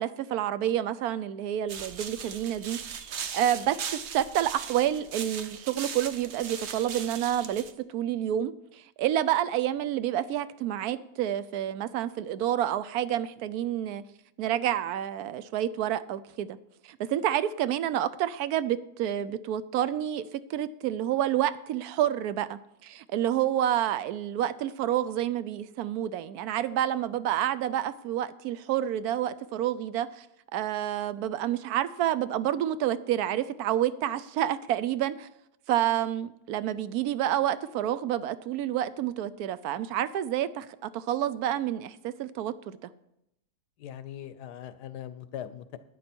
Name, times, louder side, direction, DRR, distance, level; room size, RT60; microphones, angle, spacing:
voice 1, 0.0-2.8 3.3-7.6 7.9-14.0 14.4-16.6 16.9-30.3 30.5-35.3 35.7-42.9, right 11 dB, 75° right, 15 dB, 1.1 m, -29 dB
sound 1, 1.7-7.7, right 7 dB, 55° right, 0.9 m, -38 dB
voice 2, 43.8-45.8, left 10 dB, 90° left, 13 dB, 1.3 m, -40 dB
12.0 x 9.3 x 4.4 m, 0.81 s
omnidirectional pair, 1.7 m